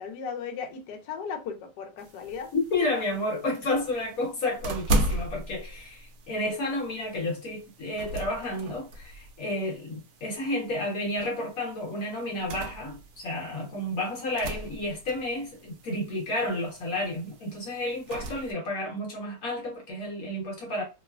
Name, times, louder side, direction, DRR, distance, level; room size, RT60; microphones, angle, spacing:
voice 1, 0.0-2.5, left 6 dB, 75° left, 1.2 m, -36 dB
sound 1, 2.0-18.5, right 1 dB, 70° right, 0.8 m, -37 dB
voice 2, 2.5-20.8, left 1 dB, 60° left, 1.3 m, -31 dB
3.0 x 2.1 x 2.2 m
omnidirectional pair, 1.9 m